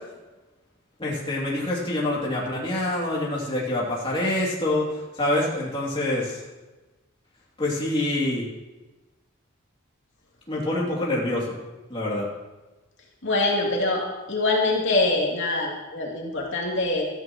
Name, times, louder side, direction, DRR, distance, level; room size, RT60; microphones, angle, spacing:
voice 1, 1.0-6.4 7.6-8.5 10.5-11.6 11.9-12.3, left 1 dB, 25° left, -5 dB, 2.8 m, -26 dB
voice 2, 13.2-17.0, left 2 dB, 65° left, -3 dB, 2.8 m, -24 dB
15.5 x 14.0 x 3.1 m, 1.1 s
head